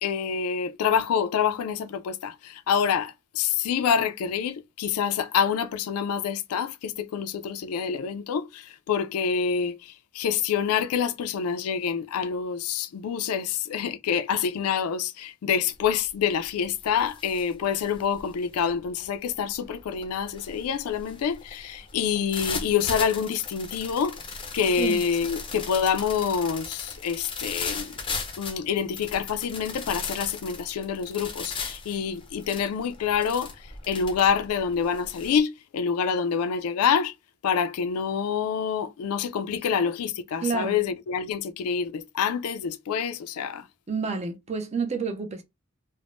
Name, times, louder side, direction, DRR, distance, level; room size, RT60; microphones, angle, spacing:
voice 1, 0.0-24.2 24.5-28.0 28.4-37.1 37.4-43.7, left 7 dB, 80° left, 0.3 m, -27 dB
sound 1, 15.8-16.1 16.5-35.4, left 4 dB, 25° left, 0.5 m, -38 dB
voice 2, 40.4-40.8 43.9-45.4, right 5 dB, 30° right, 0.5 m, -29 dB
3.3 x 2.0 x 2.5 m
head